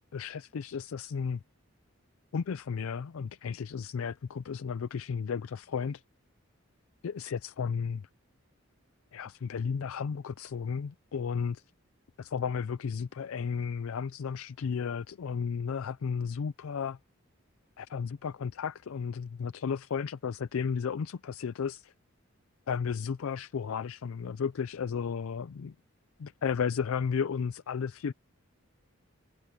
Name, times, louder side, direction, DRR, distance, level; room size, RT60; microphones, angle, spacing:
voice 1, 0.1-1.4 2.3-6.0 7.0-8.0 9.1-11.6 12.2-17.0 17.8-21.9 22.7-25.7 26.2-28.1, left 6 dB, 75° left, 0.4 m, -33 dB
head